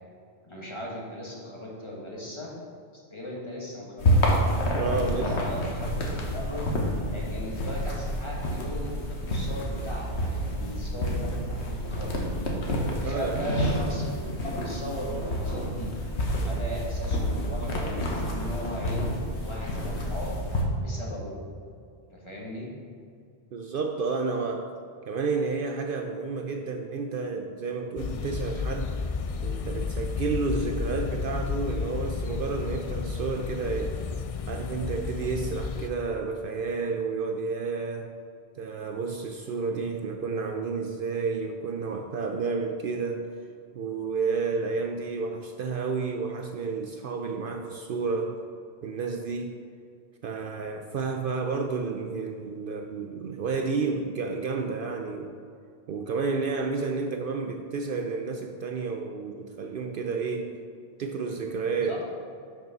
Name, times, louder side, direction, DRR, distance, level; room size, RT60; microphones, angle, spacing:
voice 1, 0.4-2.5 3.1-4.4 4.9-5.9 6.3-6.7 7.1-12.4 12.8-15.9 16.4-19.0 19.4-20.3 20.8-21.4 22.1-22.7 61.7-62.0, equal, 25° left, -4 dB, 1.8 m, -38 dB
sound 1, 4.0-20.6, equal, 85° left, 1.4 m, -28 dB
voice 2, 4.7-5.3 13.0-13.4 23.5-24.8 25.1-29.0 29.4-34.0 34.5-38.1 38.5-43.3 43.7-48.4 48.8-49.5 50.2-55.3 55.9-60.5 61.0-62.0, right 4 dB, 60° right, 4 dB, 0.7 m, -31 dB
sound 2, 28.0-35.9, left 5 dB, 60° left, 0.3 m, -32 dB
6.6 x 6.2 x 5.9 m, 2.4 s
omnidirectional pair, 1.1 m